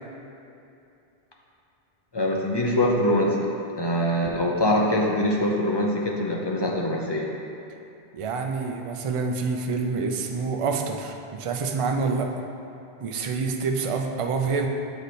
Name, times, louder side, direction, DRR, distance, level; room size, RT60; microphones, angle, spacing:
voice 1, 2.1-3.5 3.8-7.3, left 1 dB, 35° left, -1 dB, 0.4 m, -23 dB
voice 2, 8.1-12.3 13.0-14.7, right 4 dB, 50° right, 3 dB, 0.4 m, -27 dB
7.9 x 3.3 x 4.1 m, 2.7 s
omnidirectional pair, 1.1 m